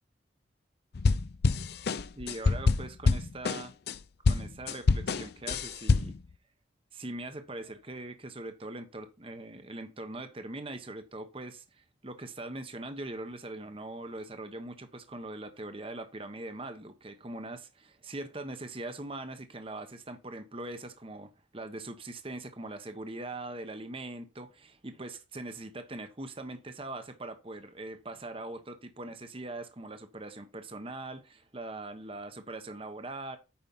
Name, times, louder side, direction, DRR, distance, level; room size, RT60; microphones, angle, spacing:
sound 1, 0.9-4.0 4.2-6.3, left 4 dB, 55° left, 0.5 m, -26 dB
voice 1, 2.2-3.7 4.2-6.1 6.9-33.4, right 2 dB, 30° right, 1.0 m, -41 dB
8.8 x 5.2 x 5.4 m
head